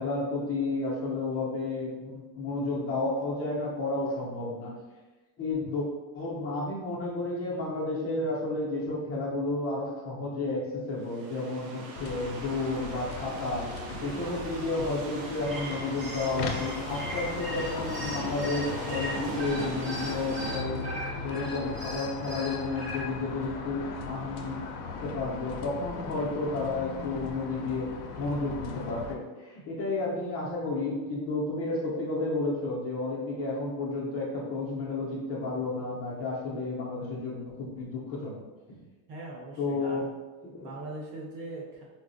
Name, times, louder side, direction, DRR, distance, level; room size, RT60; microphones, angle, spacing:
voice 1, 0.0-4.7 5.4-5.9 6.1-13.6 13.9-20.8 21.2-24.6 25.0-38.4 38.7-38.8 39.6-40.0 40.4-40.7, left 2 dB, 30° left, -5 dB, 0.6 m, -32 dB
sound 1, 10.9-20.6, right 3 dB, 85° right, 0.7 m, -41 dB
sound 2, 11.9-29.2, left 4 dB, 80° left, 0.6 m, -38 dB
sound 3, 15.3-23.0, equal, 25° right, 0.7 m, -39 dB
voice 2, 39.1-40.1 40.6-41.8, right 2 dB, 70° right, -3 dB, 1.1 m, -40 dB
3.7 x 2.1 x 2.5 m, 1.2 s
cardioid pair, 155°, 46 cm